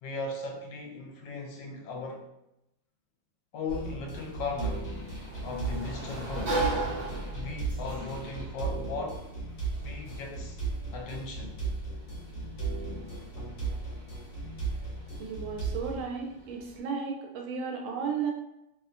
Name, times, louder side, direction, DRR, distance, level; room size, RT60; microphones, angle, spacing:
voice 1, 0.0-2.3 3.5-4.9 5.4-6.7 7.3-9.3 9.8-10.6 10.9-11.6, left 3 dB, 75° left, 1 dB, 1.2 m, -37 dB
sound 1, 3.7-16.0, right 4 dB, 55° left, 1.0 m, -36 dB
Sliding door, 4.2-16.8, right 2 dB, 50° right, 0.6 m, -39 dB
voice 2, 15.2-18.3, right 6 dB, 85° right, 1 dB, 1.3 m, -34 dB
3.1 x 2.1 x 2.4 m, 0.85 s
omnidirectional pair, 2.0 m